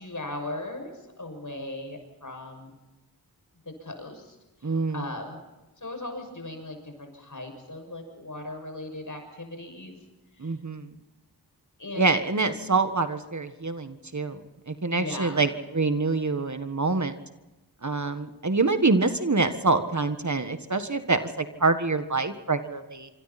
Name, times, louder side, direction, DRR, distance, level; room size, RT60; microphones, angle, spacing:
voice 1, 0.0-2.7 3.6-4.3 4.6-5.4 5.8-10.0 10.4-10.5 11.8-12.2 14.9-15.5, left 2 dB, 50° left, 4 dB, 6.8 m, -38 dB
voice 2, 4.6-5.1 10.4-10.9 12.0-14.4 14.7-17.2 17.8-23.1, right 3 dB, 45° right, 9 dB, 1.6 m, -26 dB
26.0 x 25.5 x 4.3 m, 1.1 s
cardioid pair, 40°, 40 cm